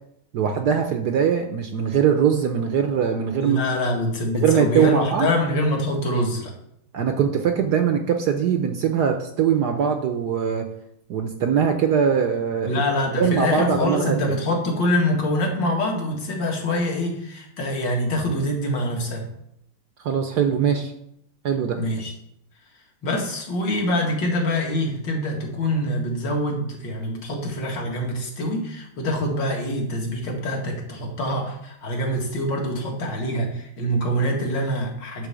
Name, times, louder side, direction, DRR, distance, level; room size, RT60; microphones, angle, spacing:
voice 1, 0.3-3.6 4.4-5.3 6.9-10.7 11.1-12.8 13.2-14.3 20.0-20.9 21.4-21.8, right 7 dB, 60° right, 6 dB, 1.1 m, -21 dB
voice 2, 3.4-6.5 12.6-19.3 21.7-22.1 23.0-35.3, left 1 dB, 60° left, 0 dB, 2.5 m, -25 dB
11.0 x 4.1 x 6.8 m, 0.75 s
omnidirectional pair, 2.3 m